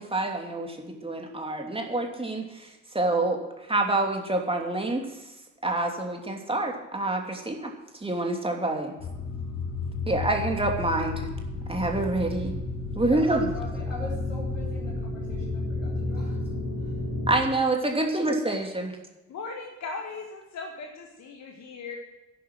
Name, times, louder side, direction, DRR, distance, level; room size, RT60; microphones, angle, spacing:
voice 1, 0.0-2.7 2.9-3.4 3.7-5.0 5.6-7.7 8.0-8.9 10.1-11.3 11.7-12.5 12.9-13.5 17.3-18.9, right 2 dB, 15° right, 2 dB, 2.9 m, -27 dB
sound 1, 9.0-17.4, left 2 dB, 65° left, 2.7 m, -32 dB
voice 2, 13.0-16.4 16.8-17.0, left 1 dB, 85° left, -3 dB, 3.6 m, -42 dB
voice 3, 19.3-22.0, left 4 dB, 45° left, 2 dB, 1.9 m, -38 dB
11.0 x 10.0 x 7.8 m, 1.0 s
figure-of-eight pair, 45°, 37 cm